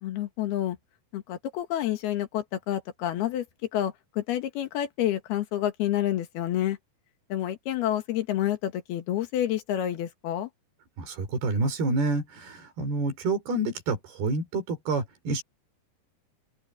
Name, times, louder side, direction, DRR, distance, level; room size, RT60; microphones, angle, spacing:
voice 1, 0.0-0.8 1.1-3.5 3.7-6.8 7.3-10.5, left 12 dB, 85° left, 3.7 m, -29 dB
voice 2, 11.0-15.4, right 2 dB, 85° right, 6.4 m, -28 dB
open air
omnidirectional pair, 4.4 m